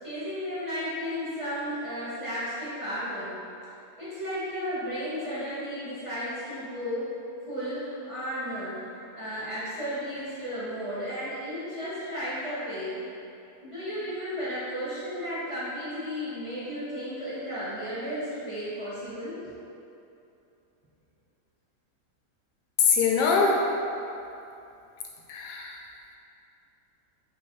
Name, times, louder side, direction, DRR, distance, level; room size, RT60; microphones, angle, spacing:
voice 1, 0.0-3.3 4.0-7.1 7.5-8.8 9.1-13.0 13.6-19.4, equal, 25° right, -12 dB, 0.9 m, -34 dB
voice 2, 22.8-23.6 25.3-25.8, left 5 dB, 85° left, 0 dB, 1.2 m, -23 dB
3.1 x 3.1 x 4.5 m, 2.7 s
omnidirectional pair, 1.8 m